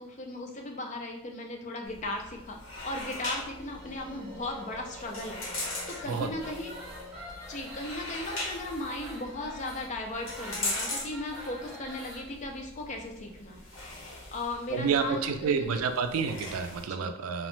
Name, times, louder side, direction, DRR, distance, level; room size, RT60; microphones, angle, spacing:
voice 1, 0.0-2.6 2.8-5.4 5.9-6.7 7.5-13.6 14.3-15.8 16.8-17.1, left 2 dB, 35° left, 2 dB, 0.4 m, -37 dB
sound 1, 1.8-16.8, left 2 dB, 65° left, 1.0 m, -41 dB
sound 2, 2.3-9.4, left 1 dB, 50° right, 0.7 m, -50 dB
sound 3, 5.9-12.3, equal, ahead, 0.6 m, -46 dB
voice 2, 6.1-6.5 14.7-17.5, right 6 dB, 85° right, 8 dB, 0.3 m, -29 dB
3.0 x 2.0 x 3.0 m, 0.77 s
head